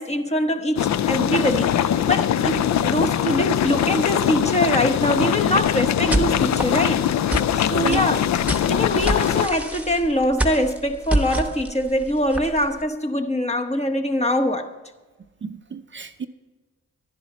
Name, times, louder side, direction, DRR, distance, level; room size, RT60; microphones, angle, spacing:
voice 1, 0.0-7.0 7.5-8.2 8.7-14.7, equal, 20° left, 1.0 m, -23 dB
sound 1, 0.8-9.5, left 10 dB, 65° left, 0.4 m, -22 dB
sound 2, 5.5-12.8, right 1 dB, 5° right, 1.1 m, -28 dB
voice 2, 15.4-16.3, right 6 dB, 40° right, 0.5 m, -31 dB
11.0 x 10.5 x 4.1 m
cardioid pair, 65°, 30 cm